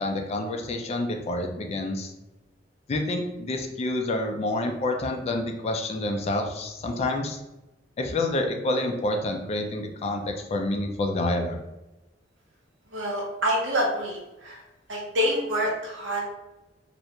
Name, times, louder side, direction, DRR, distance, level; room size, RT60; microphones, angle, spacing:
voice 1, 0.0-2.1 2.9-7.4 8.0-11.6, left 2 dB, 35° left, 3 dB, 0.3 m, -28 dB
voice 2, 12.9-14.2 14.4-14.6 14.9-16.3, equal, 80° right, -2 dB, 0.8 m, -26 dB
2.4 x 2.1 x 2.8 m, 0.98 s
head